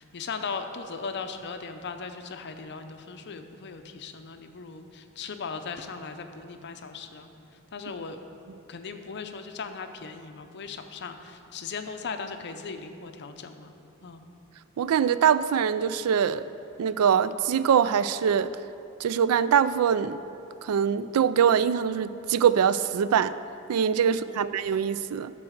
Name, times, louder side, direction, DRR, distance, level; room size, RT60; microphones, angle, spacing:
voice 1, 0.0-7.3 7.7-8.2 8.7-13.7 14.0-14.2 24.0-24.4, left 5 dB, 50° left, 7 dB, 0.6 m, -38 dB
voice 2, 14.8-16.4 16.8-18.6 19.0-20.2 20.6-23.3 23.7-25.3, right 8 dB, 80° right, 15 dB, 0.3 m, -23 dB
12.0 x 4.1 x 6.5 m, 2.7 s
head